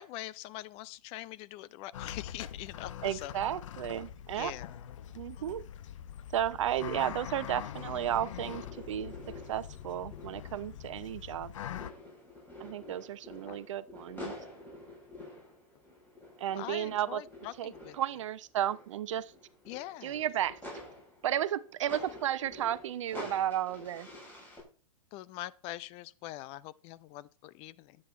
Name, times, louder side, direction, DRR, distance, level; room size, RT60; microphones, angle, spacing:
voice 1, 0.0-3.3 4.3-4.7 5.4-5.5 13.5-13.6 16.5-18.0 19.7-20.2 25.1-28.0, left 15 dB, 35° left, 0.6 m, -43 dB
sound 1, 1.9-11.9, left 10 dB, 60° left, 1.0 m, -43 dB
voice 2, 3.0-4.5 5.1-5.6 6.3-11.5 12.6-14.3 16.4-17.2 17.6-19.3 20.0-20.6 21.2-24.1, right 11 dB, 60° right, 0.8 m, -33 dB
sound 2, 7.1-11.5 11.7-24.6, left 1 dB, 10° left, 7.7 m, -49 dB
12.5 x 8.7 x 4.3 m
figure-of-eight pair, 110°, 18 cm